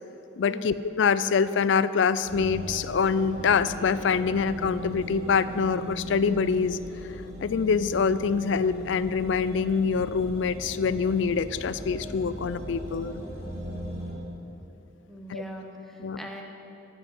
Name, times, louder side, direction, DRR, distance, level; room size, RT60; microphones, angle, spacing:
voice 1, 0.4-6.8 7.4-13.2 15.3-15.4 16.0-16.2, left 5 dB, 60° left, 15 dB, 0.4 m, -25 dB
sound 1, 2.2-14.1, equal, 15° right, 3.2 m, -39 dB
voice 2, 15.1-16.4, equal, ahead, 1 dB, 1.1 m, -40 dB
13.5 x 6.1 x 9.0 m, 2.9 s
head